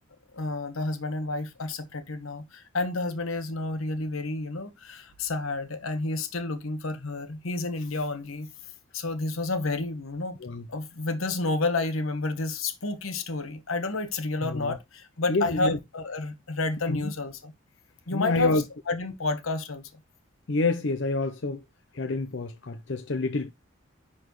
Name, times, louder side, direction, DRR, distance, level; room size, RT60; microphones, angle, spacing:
voice 1, 0.3-8.5 8.9-10.4 10.7-17.5 18.1-19.9, left 3 dB, 85° left, 1.2 m, -30 dB
voice 2, 14.4-14.7 15.3-15.8 16.9-17.1 18.1-18.6 20.5-21.6 21.9-23.5, left 2 dB, 60° left, 0.7 m, -28 dB
10.5 x 4.2 x 3.1 m
head